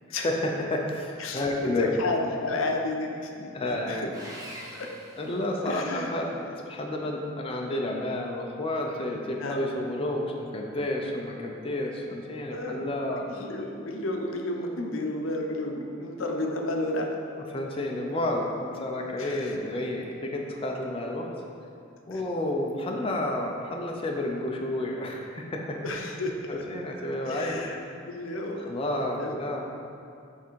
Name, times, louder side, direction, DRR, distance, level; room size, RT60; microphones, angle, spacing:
voice 1, 0.1-1.9 3.5-4.1 5.2-13.5 15.5-15.6 17.5-21.3 22.1-25.8 26.5-27.6 28.7-29.6, left 1 dB, 30° left, 0 dB, 0.5 m, -30 dB
voice 2, 1.2-4.1 4.7-4.9 5.6-6.1 9.4-9.7 12.5-12.8 13.3-17.1 19.2-19.6 22.1-22.2 25.8-26.6 27.2-28.7 29.2-29.4, left 2 dB, 80° left, 2 dB, 0.6 m, -32 dB
Sawing, 4.1-6.0, equal, 20° right, 0.8 m, -44 dB
7.2 x 3.4 x 4.6 m, 2.5 s
head